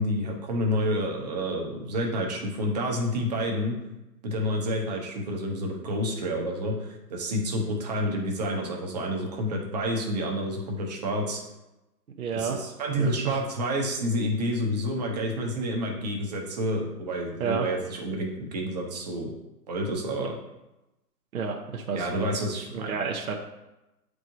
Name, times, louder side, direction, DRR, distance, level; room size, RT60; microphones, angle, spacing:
voice 1, 0.0-3.8 4.2-11.4 12.3-19.3 19.7-20.3 21.9-22.9, equal, 25° right, 0 dB, 0.9 m, -29 dB
voice 2, 12.2-12.6 13.0-13.4 17.4-17.7 21.3-22.1 22.7-23.3, right 6 dB, 60° right, 1 dB, 0.8 m, -30 dB
8.1 x 4.7 x 2.6 m, 0.96 s
hypercardioid pair, 150°, 49 cm